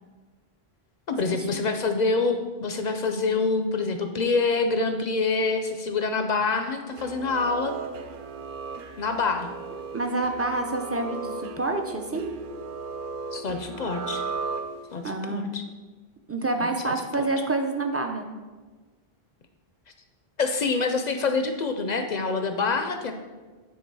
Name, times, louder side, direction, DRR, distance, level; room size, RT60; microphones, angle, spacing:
voice 1, 1.1-7.7 9.0-9.5 13.3-14.2 14.9-15.6 16.6-17.3 20.4-23.1, left 4 dB, 55° left, 7 dB, 0.6 m, -26 dB
sound 1, 6.9-15.1, right 4 dB, 60° right, 0.7 m, -36 dB
voice 2, 9.9-12.3 15.0-15.5 16.3-18.2, right 2 dB, 20° right, 4 dB, 0.4 m, -27 dB
9.4 x 3.6 x 4.7 m, 1.3 s
omnidirectional pair, 1.0 m